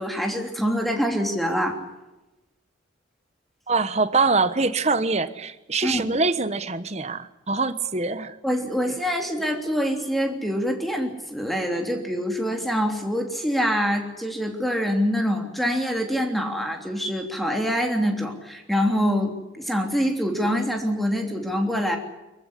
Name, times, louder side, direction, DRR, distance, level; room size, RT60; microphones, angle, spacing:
voice 1, 0.0-1.8 5.8-6.0 8.4-22.0, equal, ahead, 3 dB, 3.2 m, -25 dB
voice 2, 3.7-8.4, right 3 dB, 35° right, 12 dB, 1.1 m, -24 dB
24.5 x 15.0 x 9.9 m, 1.0 s
head